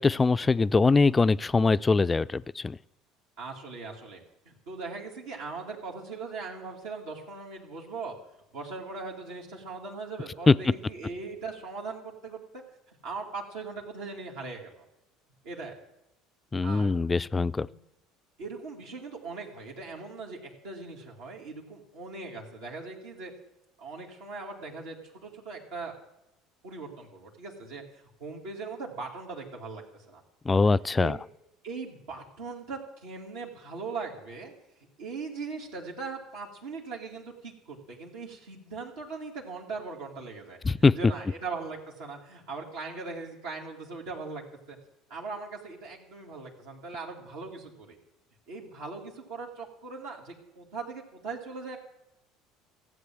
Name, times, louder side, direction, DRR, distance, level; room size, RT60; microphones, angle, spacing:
voice 1, 0.0-2.8 10.5-10.6 16.5-17.7 30.5-31.2 40.6-41.0, left 4 dB, 20° left, 16 dB, 0.4 m, -22 dB
voice 2, 3.4-8.2 8.5-14.8 15.4-15.7 16.6-16.9 17.6-17.8 18.4-23.3 23.8-25.9 26.6-30.2 31.0-31.1 31.6-34.5 35.0-44.4 44.7-44.8 45.1-48.0 48.5-51.8, right 4 dB, 75° right, -2 dB, 2.4 m, -40 dB
14.5 x 8.0 x 7.5 m, 0.89 s
hypercardioid pair, 70°, 0 cm